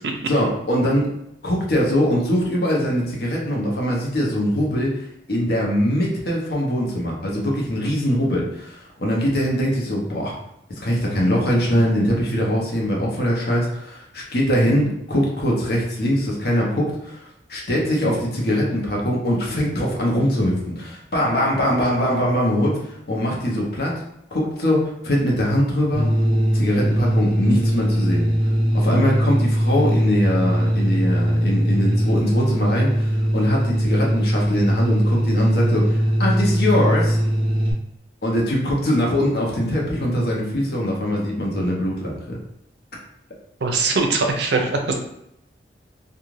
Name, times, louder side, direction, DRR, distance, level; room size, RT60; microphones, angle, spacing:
voice 1, 0.3-1.1 1.4-5.0 5.3-10.4 10.8-17.2 17.5-22.8 23.1-23.9 24.3-26.1 26.5-28.2 28.7-37.2 38.2-42.2, equal, 60° left, -2 dB, 0.8 m, -22 dB
sound 1, 25.9-37.7, equal, 30° right, 0.7 m, -20 dB
voice 2, 43.6-44.9, right 3 dB, 70° right, 3 dB, 0.5 m, -21 dB
2.4 x 2.4 x 3.1 m, 0.79 s
head